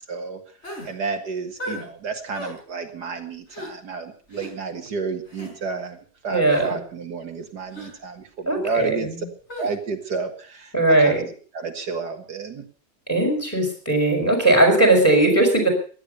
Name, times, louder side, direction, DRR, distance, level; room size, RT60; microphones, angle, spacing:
voice 1, 0.1-0.4 0.8-6.0 6.2-9.3 9.6-12.6, right 4 dB, 70° right, 5 dB, 2.2 m, -31 dB
sound 1, 0.6-0.9 1.6-1.8 2.3-2.6 3.5-3.7 4.3-4.5 5.3-5.5 6.5-6.7 7.7-7.9 9.5-9.7, equal, 40° left, 5.5 m, -34 dB
voice 2, 6.3-6.7 8.5-8.9 10.7-11.2 13.1-15.7, right 2 dB, 10° left, 3 dB, 5.6 m, -18 dB
17.0 x 11.5 x 6.6 m, 0.43 s
omnidirectional pair, 1.8 m